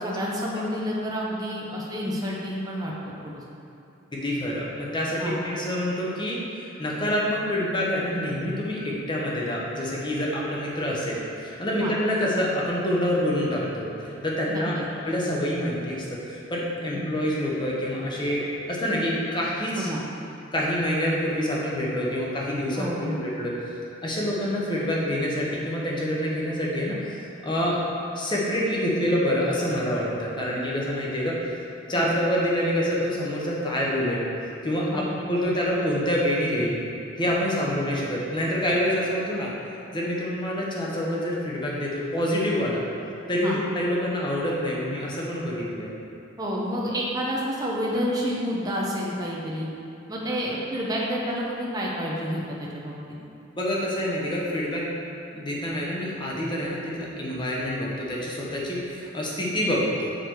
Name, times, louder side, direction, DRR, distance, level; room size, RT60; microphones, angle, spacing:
voice 1, 0.0-2.9 3.2-3.4 5.2-5.4 11.8-11.9 14.5-14.8 16.9-17.1 19.8-20.0 22.8-23.2 31.9-32.1 34.9-35.1 37.6-37.7 43.4-43.6 46.4-49.7 50.1-52.9, equal, 20° right, -5 dB, 0.7 m, -29 dB
voice 2, 4.1-14.7 15.1-19.9 20.5-23.5 24.0-27.8 28.1-31.4 31.9-34.2 34.6-36.8 37.2-39.5 39.9-42.8 43.3-45.9 53.6-54.9 55.3-60.1, equal, 20° left, -4 dB, 1.0 m, -27 dB
6.6 x 4.8 x 4.6 m, 2.7 s
head